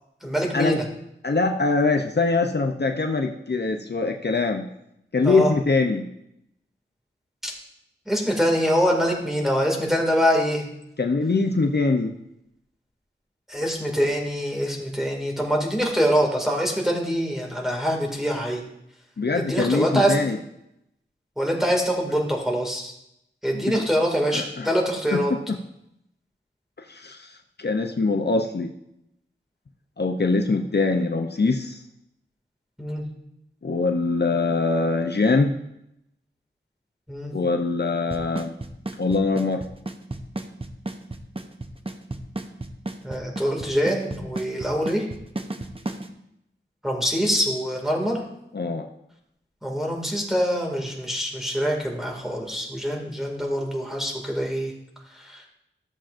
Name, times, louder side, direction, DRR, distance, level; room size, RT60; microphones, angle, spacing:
voice 1, 0.2-0.8 5.2-5.5 7.4-7.5 8.1-10.6 13.5-18.6 19.4-20.2 21.4-22.9 23.4-25.3 32.8-33.0 37.1-37.3 43.0-45.0 46.8-48.2 49.6-54.7 55.2-55.4, equal, ahead, -1 dB, 2.1 m, -24 dB
voice 2, 1.2-4.7 5.1-6.1 11.0-12.1 19.2-20.4 23.5-23.8 24.3-24.7 25.1-25.6 26.9-28.7 30.0-31.8 33.6-35.5 37.3-38.5 39.0-39.6 48.5-48.9, left 3 dB, 55° left, 4 dB, 0.6 m, -23 dB
Drum kit / Snare drum / Bass drum, 38.1-46.1, right 2 dB, 30° right, 0.7 m, -32 dB
14.0 x 7.3 x 2.5 m, 0.81 s
wide cardioid pair, 50°, 20 cm